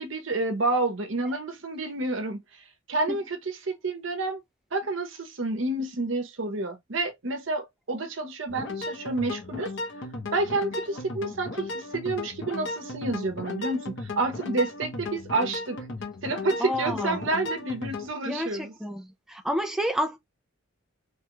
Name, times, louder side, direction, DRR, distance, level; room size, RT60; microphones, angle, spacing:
voice 1, 0.0-4.4 4.7-9.7 10.3-15.9 16.2-18.7, right 2 dB, 70° right, 0.8 m, -29 dB
sound 1, 8.5-18.1, left 2 dB, 65° left, 0.9 m, -35 dB
voice 2, 16.6-17.2 18.2-20.2, equal, ahead, 0.4 m, -30 dB
3.2 x 2.3 x 3.0 m
head